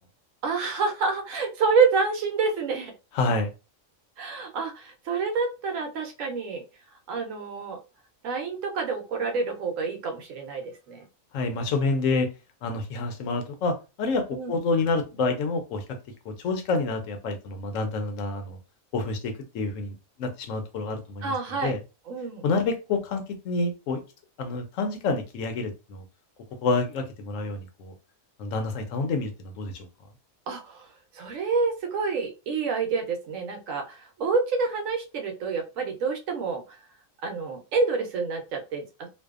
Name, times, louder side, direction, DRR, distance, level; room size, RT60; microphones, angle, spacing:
voice 1, 0.4-2.9 4.2-6.6 7.1-7.8 8.2-11.1 14.3-14.6 21.2-21.8 22.1-22.4 30.5-30.9 31.1-36.6 37.2-39.1, right 4 dB, 80° right, 4 dB, 1.0 m, -28 dB
voice 2, 3.1-3.5 11.3-12.3 12.6-16.0 16.2-18.6 18.9-19.9 20.2-21.8 22.4-24.0 24.4-26.0 26.6-27.9 28.4-29.9, left 3 dB, 75° left, 6 dB, 0.9 m, -28 dB
2.6 x 2.2 x 2.3 m, 0.29 s
omnidirectional pair, 1.4 m